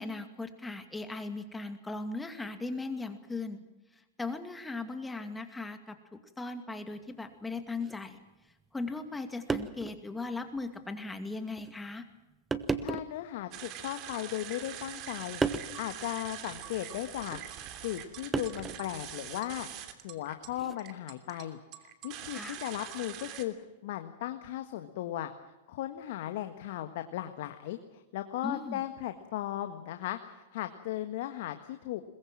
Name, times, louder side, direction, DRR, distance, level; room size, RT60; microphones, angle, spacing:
voice 1, 0.0-3.6 4.2-8.2 8.7-12.0 22.3-22.6 28.4-28.8, left 3 dB, 10° left, 8 dB, 2.4 m, -38 dB
sound 1, 7.8-8.0 9.1-9.2 9.5-10.0 10.5-10.6 11.6-11.8 12.5-13.2 14.1-14.7 15.4-15.8 17.3-17.5 18.3-18.9 20.5-20.8, right 4 dB, 15° right, 1.2 m, -34 dB
voice 2, 12.8-19.7 20.0-23.5 23.8-25.3 25.7-32.0, left 13 dB, 65° left, 8 dB, 1.6 m, -37 dB
sound 2, 13.5-23.4, right 11 dB, 45° right, 2.9 m, -44 dB
22.0 x 21.0 x 7.5 m, 1.1 s
hypercardioid pair, 115°, 0 cm